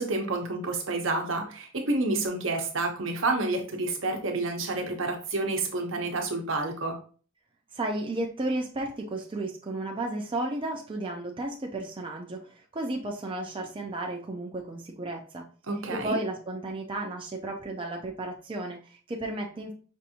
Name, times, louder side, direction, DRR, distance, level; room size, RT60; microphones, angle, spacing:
voice 1, 0.0-7.0 15.7-16.2, right 2 dB, 70° right, 3 dB, 0.9 m, -29 dB
voice 2, 7.7-15.4 15.9-19.7, right 2 dB, 25° right, 0 dB, 0.4 m, -33 dB
5.3 x 2.6 x 2.7 m, 0.40 s
head